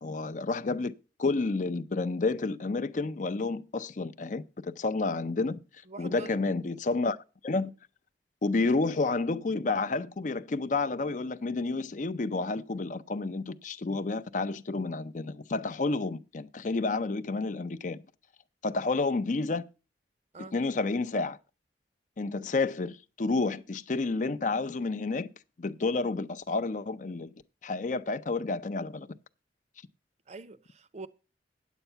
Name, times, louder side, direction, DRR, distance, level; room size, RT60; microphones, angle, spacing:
voice 1, 0.0-5.6 6.0-7.2 7.4-7.7 8.4-18.0 18.6-19.7 20.5-21.4 22.2-25.3 25.6-27.3 27.6-29.2, left 3 dB, 45° left, 0.5 m, -30 dB
voice 2, 5.9-6.4 20.3-20.5 30.3-31.1, right 3 dB, 40° right, 0.6 m, -44 dB
8.9 x 8.2 x 5.6 m
head